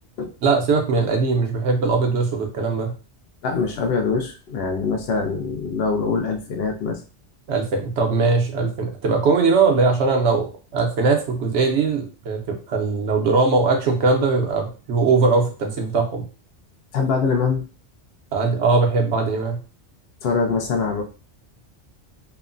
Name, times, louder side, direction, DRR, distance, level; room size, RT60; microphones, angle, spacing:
voice 1, 0.4-2.9 7.5-10.5 10.7-16.2 18.3-19.6, right 4 dB, 75° right, 2 dB, 1.0 m, -20 dB
voice 2, 3.4-7.0 16.9-17.6 20.2-21.0, left 4 dB, 65° left, 3 dB, 0.7 m, -23 dB
3.0 x 2.1 x 2.4 m, 0.35 s
omnidirectional pair, 1.2 m